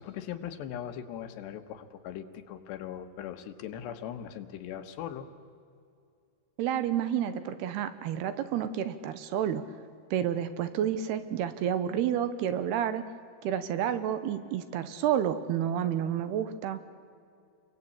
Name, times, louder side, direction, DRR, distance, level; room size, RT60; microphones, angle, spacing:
voice 1, 0.0-5.3, left 10 dB, 85° left, 8 dB, 3.5 m, -40 dB
voice 2, 6.6-9.6 10.1-13.0 13.4-16.8, right 9 dB, 75° right, 11 dB, 3.0 m, -30 dB
29.5 x 22.0 x 8.6 m, 2.4 s
omnidirectional pair, 4.8 m